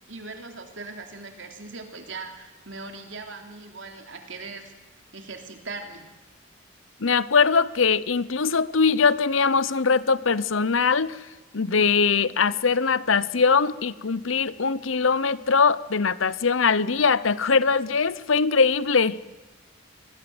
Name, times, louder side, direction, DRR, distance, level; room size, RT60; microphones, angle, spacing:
voice 1, 0.1-4.7 5.1-6.1, right 3 dB, 65° right, 4 dB, 3.3 m, -39 dB
voice 2, 7.0-11.2 11.5-19.2, left 5 dB, 75° left, 18 dB, 0.8 m, -21 dB
25.0 x 21.0 x 8.0 m, 1.2 s
head